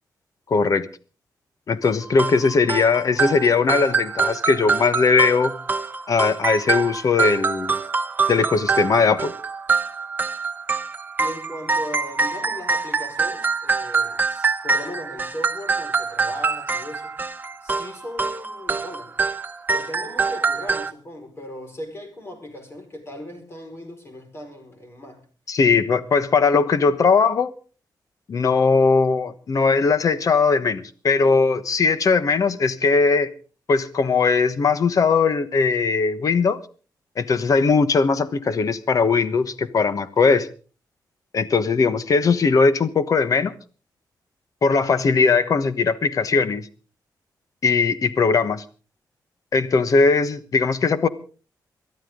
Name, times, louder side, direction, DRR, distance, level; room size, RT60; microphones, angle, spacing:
voice 1, 0.5-0.9 1.7-5.5 6.1-7.8 8.3-9.3 25.5-27.5 28.3-33.3 33.7-36.6 37.2-40.5 41.3-43.5 44.6-46.7 47.6-48.6 49.5-51.1, left 4 dB, 50° left, 1.2 m, -19 dB
sound 1, 1.8-20.9, right 4 dB, 25° right, 0.9 m, -25 dB
voice 2, 11.2-17.1 17.6-19.1 19.7-25.2, left 1 dB, 35° left, 5.1 m, -38 dB
22.5 x 13.0 x 3.8 m
wide cardioid pair, 130°, 7 cm